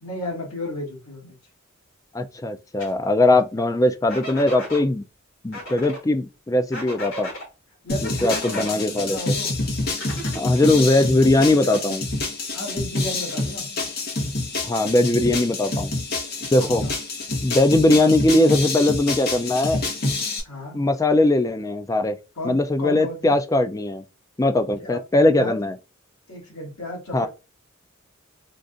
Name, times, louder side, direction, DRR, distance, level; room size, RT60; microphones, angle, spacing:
voice 1, 0.0-1.4 7.8-8.8 9.1-9.5 10.7-11.9 12.5-13.7 16.6-16.9 20.4-20.8 22.4-23.4 24.8-25.0 25.3-25.6 26.3-27.3, left 1 dB, 85° left, 1.8 m, -34 dB
voice 2, 2.1-5.0 5.4-7.3 8.0-9.2 10.3-12.0 14.6-15.9 16.5-16.8 17.4-19.8 20.7-22.2 22.4-24.0 24.4-25.7 27.1-27.3, left 2 dB, 15° left, 0.3 m, -20 dB
sound 1, 2.8-2.9 4.1-4.8 5.5-6.0 6.7-7.5 8.0-8.7 9.9-10.7, left 1 dB, 65° left, 1.8 m, -35 dB
sound 2, 7.9-20.4, left 2 dB, 50° left, 1.0 m, -27 dB
3.8 x 2.5 x 2.4 m
head